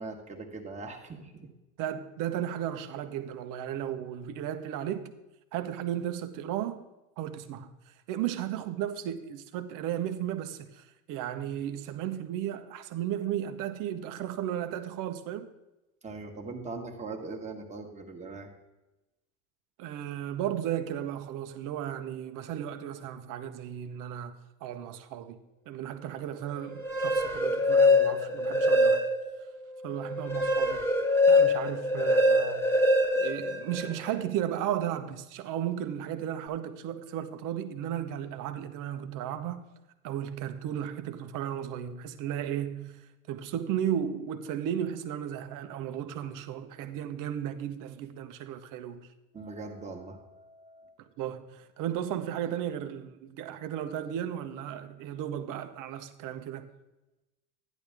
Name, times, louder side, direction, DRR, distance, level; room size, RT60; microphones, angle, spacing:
voice 1, 0.0-1.5 16.0-18.5 49.3-51.0, right 3 dB, 15° right, 1.6 m, -41 dB
voice 2, 1.8-5.1 5.5-6.8 7.2-15.5 19.8-29.0 29.8-30.9 31.3-32.7 33.1-39.6 40.0-49.1 51.0-56.7, right 10 dB, 45° right, 1.0 m, -35 dB
sound 1, 26.7-29.4 29.8-34.1, left 1 dB, 5° left, 1.2 m, -24 dB
11.5 x 10.5 x 3.6 m
supercardioid pair, 115°, 43 cm